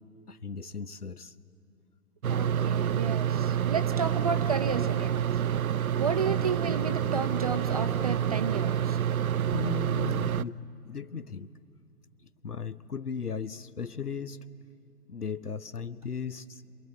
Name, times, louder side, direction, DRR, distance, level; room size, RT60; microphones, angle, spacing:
voice 1, 0.3-1.3 9.5-11.5 12.4-14.4 15.1-16.6, left 6 dB, 85° left, 16 dB, 0.9 m, -36 dB
sound 1, 2.2-10.4, right 9 dB, 70° right, 0.5 m, -28 dB
voice 2, 2.3-5.3 6.0-9.0, right 5 dB, 25° right, 9 dB, 0.7 m, -32 dB
27.0 x 21.5 x 7.8 m, 2.7 s
figure-of-eight pair, 135°, 45 cm